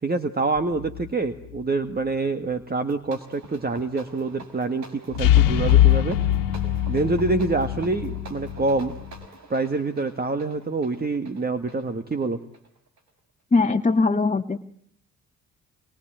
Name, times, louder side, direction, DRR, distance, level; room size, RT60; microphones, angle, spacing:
voice 1, 0.0-6.2 6.9-8.9 9.5-12.4, right 3 dB, 30° right, 9 dB, 2.0 m, -26 dB
sound 1, 0.6-1.1 5.1-9.2, left 12 dB, 80° left, 1.7 m, -22 dB
sound 2, 2.8-13.1, right 3 dB, 60° right, 5.7 m, -46 dB
voice 2, 13.5-14.6, left 3 dB, 25° left, 5 dB, 1.6 m, -20 dB
27.0 x 24.0 x 9.2 m, 0.64 s
hypercardioid pair, 55°, 32 cm